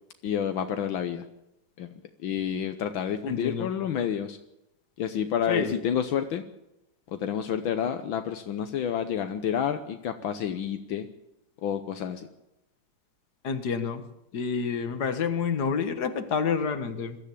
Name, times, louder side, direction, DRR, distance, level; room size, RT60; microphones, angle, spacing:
voice 1, 0.2-1.2 1.8-1.9 2.2-4.4 5.0-6.4 7.1-11.1 11.6-12.3, left 8 dB, 75° left, 8 dB, 1.8 m, -29 dB
voice 2, 3.3-3.7 5.5-5.7 13.4-14.0 14.3-17.2, left 6 dB, 55° left, 9 dB, 2.1 m, -28 dB
22.0 x 14.0 x 8.5 m, 0.91 s
omnidirectional pair, 2.2 m